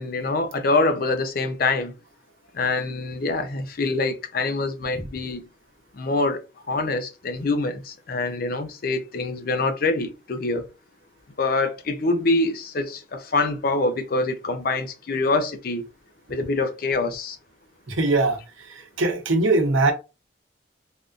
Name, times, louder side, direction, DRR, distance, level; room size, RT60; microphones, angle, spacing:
voice 1, 0.0-1.9 2.5-5.4 5.9-6.4 6.7-10.7 11.4-15.9 16.3-17.4, left 3 dB, 50° left, 0.5 m, -25 dB
voice 2, 17.9-18.4 18.7-19.9, right 2 dB, 85° right, 0.8 m, -21 dB
3.4 x 2.5 x 2.4 m
head